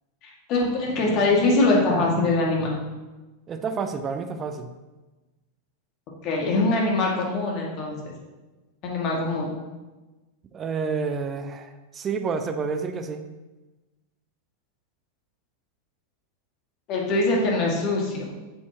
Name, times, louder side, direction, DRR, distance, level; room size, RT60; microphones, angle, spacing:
voice 1, 0.2-2.7 6.2-8.1 8.8-9.5 16.9-18.2, left 2 dB, 40° left, -2 dB, 2.2 m, -23 dB
voice 2, 3.5-4.7 10.5-13.3, right 5 dB, 25° right, 8 dB, 0.7 m, -29 dB
9.2 x 7.1 x 3.0 m, 1.2 s
figure-of-eight pair, 90°, 0 cm